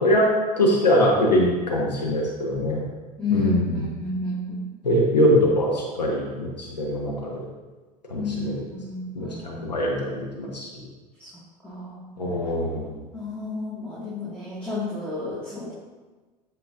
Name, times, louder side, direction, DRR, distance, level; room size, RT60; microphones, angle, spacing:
voice 1, 0.6-2.8 3.3-3.9 4.8-7.5 8.1-8.5 9.1-10.7 12.2-12.9, equal, 85° left, -2 dB, 1.2 m, -22 dB
voice 2, 3.2-4.7 8.1-9.9 11.2-11.3 11.6-12.0 13.1-15.7, left 2 dB, 5° left, -7 dB, 1.8 m, -31 dB
13.0 x 4.5 x 2.5 m, 1.3 s
figure-of-eight pair, 70°, 21 cm